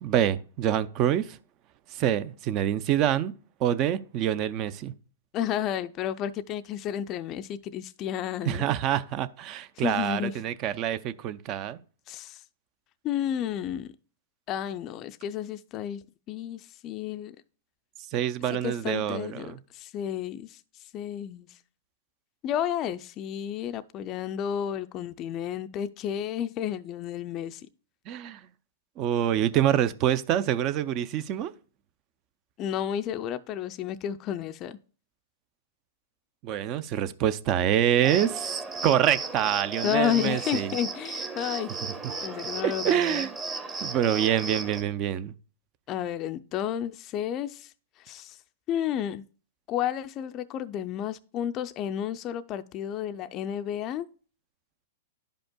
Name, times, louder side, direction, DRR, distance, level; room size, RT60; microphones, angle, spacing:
voice 1, 0.0-1.4 1.9-3.3 3.6-4.9 8.5-11.8 18.1-19.6 28.1-28.4 29.0-31.5 36.4-38.5 38.8-40.7 42.6-43.3 43.8-45.3, right 10 dB, 35° right, 0.4 m, -26 dB
voice 2, 5.3-8.7 9.8-10.4 12.1-12.4 13.0-13.9 14.5-17.4 18.5-20.6 20.9-21.5 22.4-27.6 32.6-34.8 39.8-41.8 42.2-43.3 45.9-47.7 48.0-48.4 48.7-49.2 49.7-54.1, left 10 dB, 30° left, 0.4 m, -31 dB
Cricket, 38.0-44.8, right 3 dB, 20° right, 0.9 m, -35 dB
11.0 x 5.2 x 2.2 m
hypercardioid pair, 135°, 0 cm